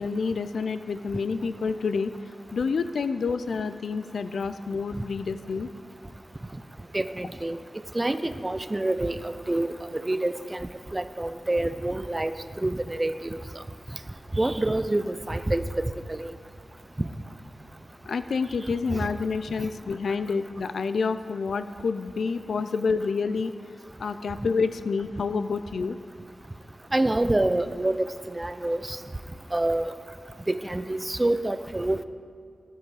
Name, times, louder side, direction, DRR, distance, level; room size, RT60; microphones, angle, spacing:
voice 1, 0.0-2.1 2.5-5.7 18.1-23.5 24.0-26.0, left 5 dB, 80° left, 12 dB, 0.4 m, -28 dB
voice 2, 6.9-7.6 7.9-12.3 12.6-13.4 14.3-16.3 18.9-19.1 19.6-19.7 26.9-29.0 29.5-29.9 30.5-32.0, right 1 dB, 20° right, 11 dB, 0.5 m, -27 dB
11.5 x 8.5 x 4.8 m, 2.3 s
wide cardioid pair, 80°, 0 cm